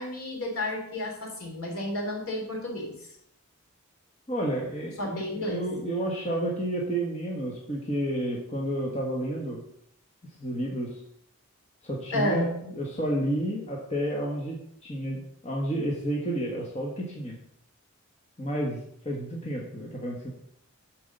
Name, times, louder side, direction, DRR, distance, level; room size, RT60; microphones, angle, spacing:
voice 1, 0.0-2.9 5.0-5.6 12.1-12.5, left 1 dB, 75° left, 0 dB, 3.1 m, -31 dB
voice 2, 4.3-9.6 10.4-11.0 11.8-14.6 14.8-17.3 18.4-18.8 19.0-20.3, right 1 dB, 30° left, -2 dB, 1.3 m, -31 dB
7.8 x 4.8 x 6.7 m, 0.70 s
head